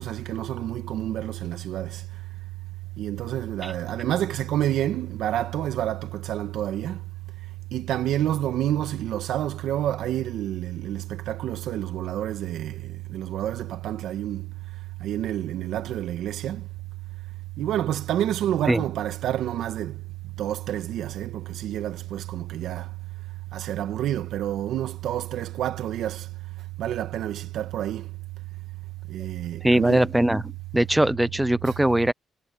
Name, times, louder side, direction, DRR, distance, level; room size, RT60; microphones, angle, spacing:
voice 1, 0.0-1.9 3.0-7.0 7.7-12.7 13.1-14.5 15.0-16.6 17.6-19.9 20.4-22.8 23.5-26.2 26.8-28.0 29.1-30.1 31.6-31.7, right 12 dB, 80° right, 2.0 m, -28 dB
voice 2, 29.6-30.4 30.7-32.1, right 1 dB, 5° right, 0.6 m, -21 dB
cardioid pair, 90°, 0 cm